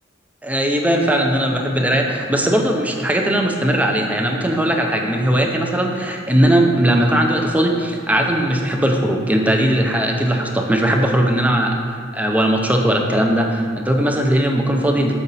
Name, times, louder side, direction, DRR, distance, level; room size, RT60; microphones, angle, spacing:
voice 1, 0.4-15.2, right 1 dB, 10° right, 2 dB, 0.6 m, -18 dB
7.0 x 5.0 x 4.1 m, 2.1 s
head